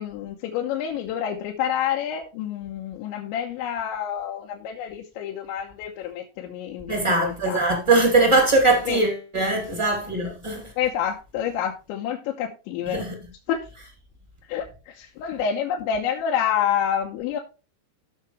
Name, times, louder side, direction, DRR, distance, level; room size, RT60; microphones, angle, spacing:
voice 1, 0.0-6.9 7.2-7.6 8.9-9.0 10.8-13.1 13.5-13.6 14.5-17.4, left 9 dB, 85° left, 3.3 m, -28 dB
voice 2, 6.9-10.7 12.9-13.1, right 2 dB, 10° right, 1.3 m, -21 dB
16.0 x 5.8 x 3.2 m
omnidirectional pair, 5.3 m